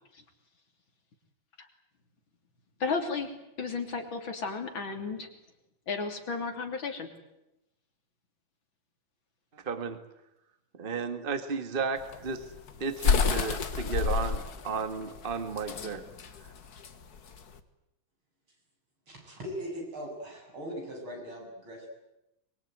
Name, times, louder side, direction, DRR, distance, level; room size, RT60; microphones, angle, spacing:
voice 1, 2.8-3.3 3.6-5.3 5.9-7.1, left 4 dB, 70° left, 4 dB, 3.9 m, -33 dB
voice 2, 9.5-10.0 10.7-12.5 12.8-16.0, right 5 dB, 25° right, 9 dB, 1.8 m, -33 dB
sound 1, 12.0-17.6, left 5 dB, 50° left, 1.8 m, -29 dB
voice 3, 19.1-21.9, equal, 85° right, 0 dB, 9.0 m, -40 dB
24.5 x 22.5 x 9.3 m, 0.89 s
omnidirectional pair, 2.2 m